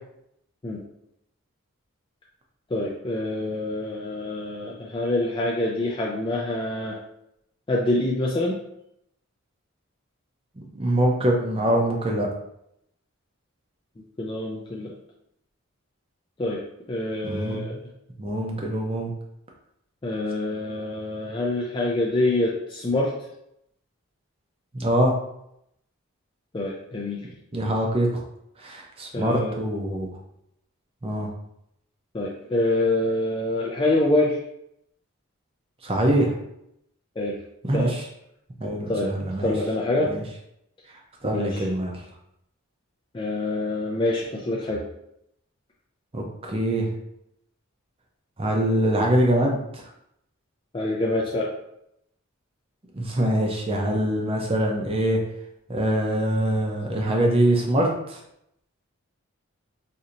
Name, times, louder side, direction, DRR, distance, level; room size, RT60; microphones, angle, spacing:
voice 1, 2.7-7.0 7.7-8.5 14.2-14.9 16.4-16.6 16.9-17.8 20.0-23.1 26.5-27.2 29.1-29.5 32.1-34.4 37.2-37.4 37.7-37.9 38.9-39.1 39.4-40.1 41.2-41.6 43.1-44.8 50.7-51.5, left 2 dB, 20° left, -4 dB, 0.3 m, -26 dB
voice 2, 10.6-12.3 17.2-17.6 18.2-19.1 24.7-25.1 27.5-28.1 28.6-30.1 31.0-31.3 35.8-36.3 37.7-38.0 38.6-39.5 40.0-40.2 41.2-42.0 46.1-46.9 48.4-49.6 52.9-55.2 55.7-58.2, right 1 dB, 25° right, 0 dB, 0.6 m, -23 dB
4.3 x 2.7 x 2.5 m, 0.77 s
head